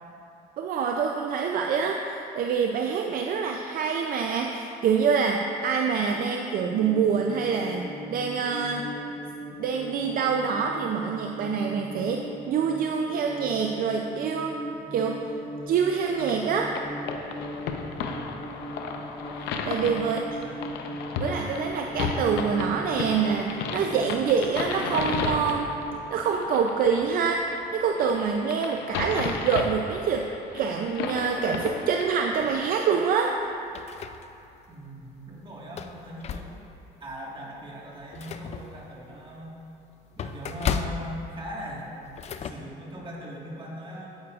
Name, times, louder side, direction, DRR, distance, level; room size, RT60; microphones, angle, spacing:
voice 1, 0.6-8.9 9.6-14.6 14.9-15.2 15.7-16.7 19.6-20.2 21.2-25.7 26.1-27.5 27.7-30.2 30.5-33.3, right 6 dB, 60° right, 3 dB, 0.4 m, -26 dB
sound 1, 6.8-26.0, equal, 10° left, 0.9 m, -39 dB
sound 2, 15.9-32.7, left 5 dB, 85° left, 0.6 m, -34 dB
voice 2, 18.0-18.7 20.0-20.7 34.7-36.5 37.0-39.6 40.2-41.9 42.4-44.1, equal, 30° right, -3 dB, 1.6 m, -40 dB
sound 3, 33.4-34.7 35.1-35.2 35.6-36.9 37.3-37.5 37.8-42.5, left 7 dB, 40° left, 0.4 m, -35 dB
9.5 x 8.3 x 2.4 m, 2.8 s
cardioid pair, 110°, 17 cm